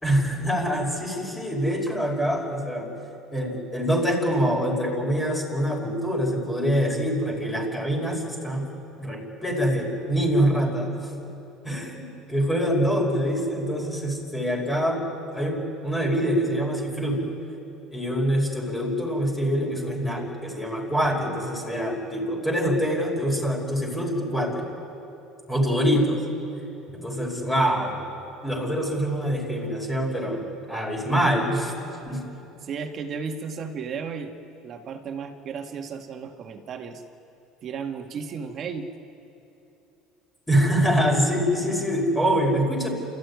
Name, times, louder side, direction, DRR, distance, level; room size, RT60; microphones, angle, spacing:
voice 1, 0.0-2.9 3.3-11.1 11.6-15.0 15.3-17.2 17.9-24.7 25.5-26.2 26.9-28.0 28.4-31.7 32.1-32.3 40.5-42.9, equal, 10° left, -1 dB, 5.1 m, -25 dB
voice 2, 32.6-34.3 34.6-37.0 37.6-38.9, right 6 dB, 45° right, 5 dB, 1.9 m, -34 dB
28.0 x 14.0 x 9.6 m, 2.9 s
supercardioid pair, 115°, 0 cm